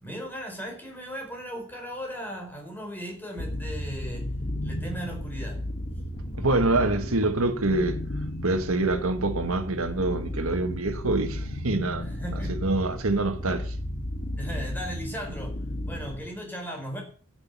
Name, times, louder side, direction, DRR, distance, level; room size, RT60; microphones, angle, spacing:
voice 1, 0.0-4.3 4.6-5.6 12.0-12.6 14.4-15.6 15.9-17.0, equal, 10° left, 4.4 m, -37 dB
sound 1, 3.4-5.2 7.1-9.0 10.8-12.7, left 2 dB, 80° left, 1.1 m, -40 dB
sound 2, 3.4-16.2, left 1 dB, 40° left, 1.8 m, -34 dB
voice 2, 6.4-8.0 8.4-12.1 12.6-13.7, right 2 dB, 75° right, 1.6 m, -25 dB
13.0 x 8.1 x 8.3 m
head